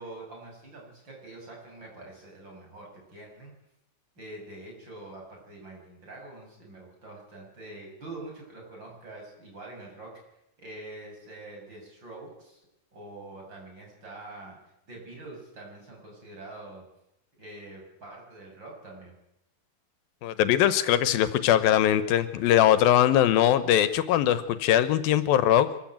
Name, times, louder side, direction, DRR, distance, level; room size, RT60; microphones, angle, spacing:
voice 1, 0.0-3.5 4.2-10.1 10.6-12.6 12.9-16.8 17.4-19.1, right 2 dB, 30° right, -1 dB, 7.6 m, -45 dB
voice 2, 20.2-25.7, left 11 dB, 85° left, 14 dB, 2.8 m, -21 dB
24.0 x 15.0 x 9.2 m, 0.85 s
omnidirectional pair, 4.1 m